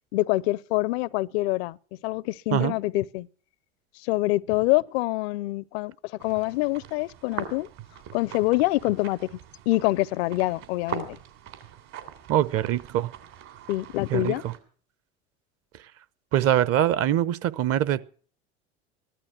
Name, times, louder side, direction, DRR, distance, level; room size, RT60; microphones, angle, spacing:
voice 1, 0.1-1.8 2.0-3.3 4.0-5.9 6.2-7.7 8.1-9.4 9.7-11.2 13.7-14.4, left 19 dB, 70° left, 0.6 m, -25 dB
sound 1, 6.2-14.6, right 9 dB, 60° right, 3.3 m, -41 dB
voice 2, 12.3-13.1 14.1-14.5 16.3-18.0, right 11 dB, 45° right, 0.9 m, -23 dB
15.0 x 12.0 x 5.8 m
hypercardioid pair, 85°, 32 cm